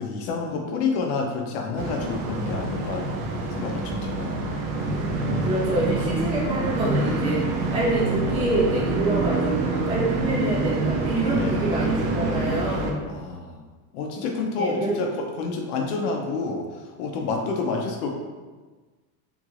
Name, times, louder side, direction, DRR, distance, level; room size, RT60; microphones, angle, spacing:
voice 1, 0.0-3.1 3.6-4.5 11.3-11.6 13.1-13.6 13.9-18.1, left 4 dB, 75° left, 2 dB, 0.8 m, -29 dB
sound 1, 1.8-12.9, right 2 dB, 65° right, 0.7 m, -26 dB
voice 2, 5.4-7.4 7.7-13.1 14.6-14.9, right 1 dB, 15° right, -6 dB, 0.4 m, -26 dB
3.5 x 2.4 x 3.1 m, 1.3 s
supercardioid pair, 125°, 45 cm